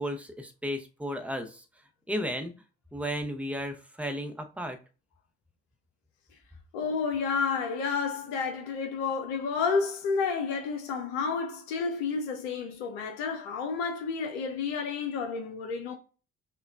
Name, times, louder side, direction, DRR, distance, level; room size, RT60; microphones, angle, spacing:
voice 1, 0.0-1.6 2.1-2.5 2.9-4.8, equal, 5° right, 0.7 m, -34 dB
voice 2, 6.7-15.9, left 5 dB, 75° left, 0.5 m, -30 dB
5.5 x 2.2 x 2.3 m
figure-of-eight pair, 45°, 32 cm